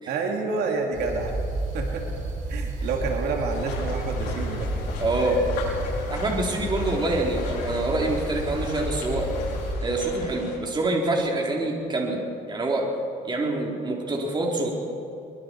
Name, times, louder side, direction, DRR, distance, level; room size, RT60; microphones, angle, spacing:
voice 1, 0.1-1.3 1.7-2.1 2.5-4.7, right 4 dB, 75° right, 1 dB, 2.8 m, -28 dB
sound 1, 0.9-9.7, right 2 dB, 50° right, 6.7 m, -32 dB
sound 2, 3.5-10.6, left 4 dB, 85° left, 5.8 m, -35 dB
voice 2, 5.0-5.5 6.1-9.3 9.8-12.2 12.5-12.9 13.2-14.7, right 2 dB, 25° right, 0 dB, 4.2 m, -26 dB
23.5 x 23.5 x 4.8 m, 2.8 s
cardioid pair, 110°, 17 cm